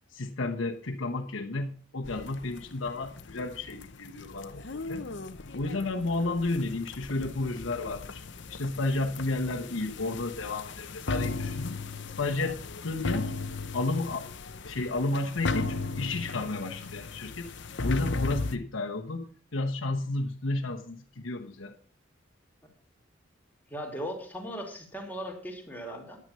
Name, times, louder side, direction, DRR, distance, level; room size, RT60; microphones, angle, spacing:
voice 1, 0.1-5.1 5.5-8.2 8.5-11.8 12.2-13.3 13.7-14.3 14.6-17.5 17.8-21.7, left 2 dB, 90° left, 1 dB, 1.1 m, -32 dB
sound 1, 2.0-18.6, left 3 dB, 65° left, 0.8 m, -36 dB
voice 2, 23.7-26.2, equal, 10° left, 1 dB, 2.8 m, -38 dB
10.5 x 9.3 x 5.6 m, 0.43 s
head